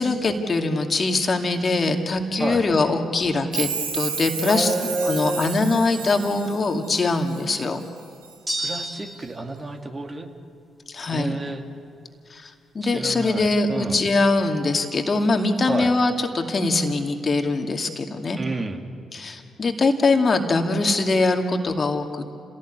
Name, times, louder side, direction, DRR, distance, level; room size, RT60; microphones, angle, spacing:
voice 1, 0.0-4.7 5.1-7.8 10.9-11.4 12.3-18.4 19.1-22.3, left 3 dB, 40° left, 4 dB, 2.3 m, -22 dB
Chime, 3.5-7.4 7.8-8.3 8.7-8.8, right 6 dB, 80° right, 2.1 m, -31 dB
voice 2, 4.5-5.6 8.6-10.3 11.1-11.6 12.8-14.0 15.7-15.9 18.4-18.8, right 2 dB, 30° right, 4 dB, 2.5 m, -29 dB
sound 1, 8.5-9.4, right 1 dB, 10° right, 4.1 m, -30 dB
30.0 x 17.5 x 8.3 m, 2.4 s
figure-of-eight pair, 40°, 0 cm